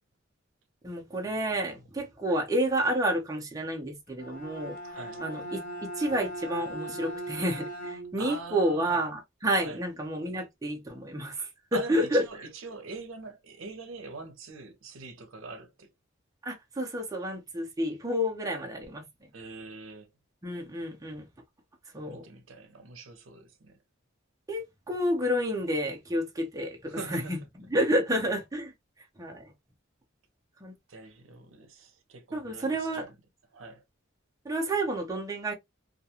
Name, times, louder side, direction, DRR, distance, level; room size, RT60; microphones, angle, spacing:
voice 1, 0.8-4.8 5.2-12.5 16.4-19.0 20.4-21.3 21.9-22.2 24.5-27.4 27.7-28.7 29.2-29.5 30.6-30.7 32.3-33.1 34.4-35.5, equal, 20° right, 0.6 m, -30 dB
Bowed string instrument, 4.1-8.4, right 1 dB, 45° left, 0.8 m, -39 dB
voice 2, 4.9-5.2 8.2-9.0 9.6-9.8 11.7-15.9 19.3-20.1 22.1-23.8 26.9-27.4 30.9-33.2 33.5-33.8, right 3 dB, 75° right, 0.7 m, -43 dB
2.4 x 2.2 x 2.8 m
head